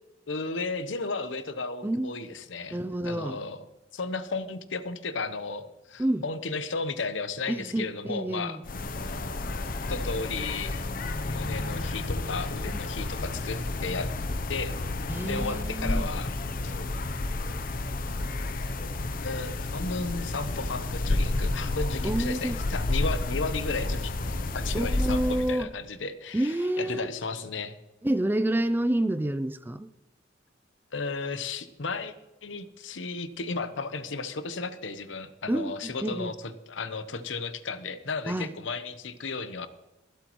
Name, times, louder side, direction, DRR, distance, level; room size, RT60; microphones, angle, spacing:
voice 1, 0.3-3.7 3.9-8.6 9.9-10.8 11.2-14.1 14.5-14.7 15.3-16.3 16.6-16.8 19.2-27.7 30.9-32.1 32.4-39.7, left 4 dB, 80° left, 11 dB, 0.9 m, -34 dB
voice 2, 1.8-2.1 2.7-3.4 6.0-6.2 7.5-8.6 12.6-12.8 15.1-16.1 22.0-22.6 24.7-25.7 26.3-27.1 28.0-29.9 35.5-35.7 36.0-36.3 38.3-38.5, right 1 dB, 10° right, 13 dB, 0.4 m, -28 dB
sound 1, 8.6-25.6, left 2 dB, 45° left, 0.7 m, -31 dB
24.0 x 8.2 x 3.1 m, 1.0 s
head